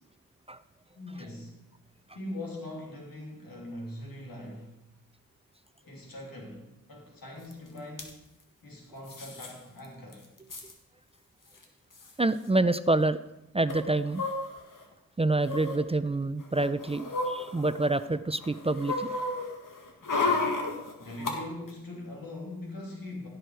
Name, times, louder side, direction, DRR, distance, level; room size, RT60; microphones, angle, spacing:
voice 1, 0.9-1.6 2.1-4.9 5.8-8.2 8.6-10.3 20.0-20.6 21.0-23.3, left 1 dB, 85° left, -1 dB, 3.0 m, -42 dB
sound 1, 7.5-7.6 7.8-8.1 9.1-9.5 9.8-9.9 10.1-10.7 11.6-11.7 11.9-12.1 13.7-14.8 15.4-15.8 16.4-18.0 18.4-21.3 21.7-21.8, left 3 dB, 65° left, 1.9 m, -32 dB
voice 2, 12.2-13.2 13.5-14.2 15.2-19.1, right 2 dB, 20° right, 13 dB, 0.4 m, -27 dB
16.0 x 6.4 x 4.6 m, 0.90 s
cardioid pair, 45°, 34 cm